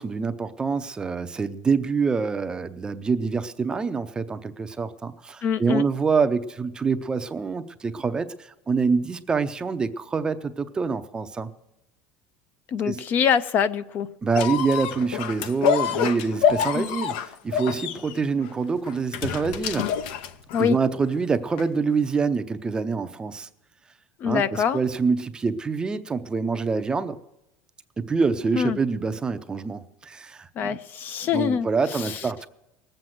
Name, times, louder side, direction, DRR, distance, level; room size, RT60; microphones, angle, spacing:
voice 1, 0.0-11.5 12.8-13.0 14.2-17.1 17.4-19.9 20.6-23.5 24.2-27.2 28.0-30.8 31.3-32.5, right 5 dB, 15° right, 10 dB, 0.6 m, -26 dB
voice 2, 5.4-5.8 12.7-14.1 15.8-16.1 16.7-16.9 20.5-20.8 24.2-24.8 28.6-28.8 30.6-32.3, left 8 dB, 35° left, 13 dB, 0.5 m, -25 dB
sound 1, 14.3-20.8 21.6-21.7, left 8 dB, 80° left, 0.9 m, -26 dB
19.0 x 7.9 x 7.5 m, 0.87 s
cardioid pair, 155°, 6 cm